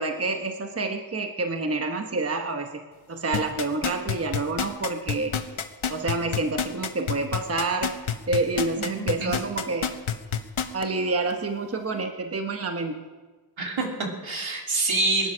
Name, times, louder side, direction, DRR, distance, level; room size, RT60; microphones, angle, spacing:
voice 1, 0.0-2.8 3.1-5.3 5.9-7.9 8.3-9.9 10.7-13.0, right 3 dB, 30° right, 5 dB, 1.0 m, -28 dB
sound 1, 3.3-10.8 11.3-11.4, left 8 dB, 85° left, 1.1 m, -28 dB
voice 2, 8.8-9.3 13.6-15.3, right 3 dB, 75° right, 0 dB, 3.2 m, -27 dB
21.0 x 10.5 x 6.1 m, 1.4 s
wide cardioid pair, 120°, 48 cm